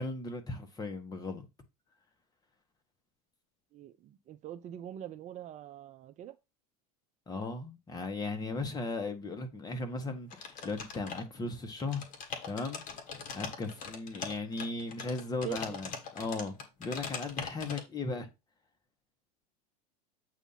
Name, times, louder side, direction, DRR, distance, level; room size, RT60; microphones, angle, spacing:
voice 1, 0.0-1.5 7.3-12.1 12.4-12.8 13.3-16.5 16.8-18.3, left 3 dB, 20° left, 1.4 m, -37 dB
voice 2, 3.7-6.3 15.4-15.8, right 12 dB, 40° right, 0.5 m, -43 dB
sound 1, 10.3-11.5 11.7-17.8, left 6 dB, 45° left, 1.6 m, -41 dB
8.2 x 2.8 x 5.6 m
supercardioid pair, 115°, 19 cm